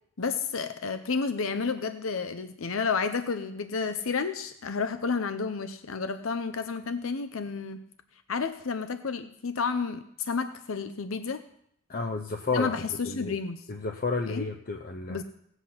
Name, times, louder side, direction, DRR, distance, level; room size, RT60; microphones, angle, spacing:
voice 1, 0.2-7.8 8.3-11.4 12.5-13.6 14.3-14.4 15.1-15.2, left 5 dB, 85° left, 10 dB, 0.7 m, -31 dB
voice 2, 11.9-13.4 13.7-15.2, left 4 dB, 45° left, 4 dB, 0.7 m, -31 dB
17.5 x 8.2 x 5.7 m, 0.71 s
head